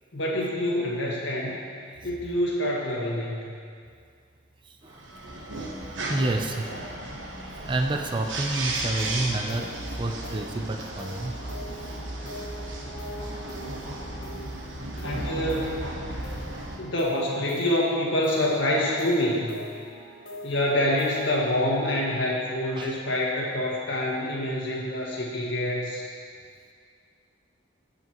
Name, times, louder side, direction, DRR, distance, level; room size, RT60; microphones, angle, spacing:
voice 1, 0.1-1.6 2.0-3.5 15.0-15.9 16.8-19.6 20.4-26.0, left 1 dB, 70° left, -4 dB, 1.8 m, -26 dB
voice 2, 4.6-5.0 6.1-6.7 7.6-11.3 14.8-14.9 16.1-16.3 22.8-23.0, right 2 dB, 25° right, 4 dB, 0.5 m, -29 dB
sound 1, 4.9-16.8, right 2 dB, 75° right, 1.1 m, -35 dB
sound 2, 8.4-21.4, equal, 45° left, 1.3 m, -43 dB
16.5 x 5.7 x 3.0 m, 2.2 s
head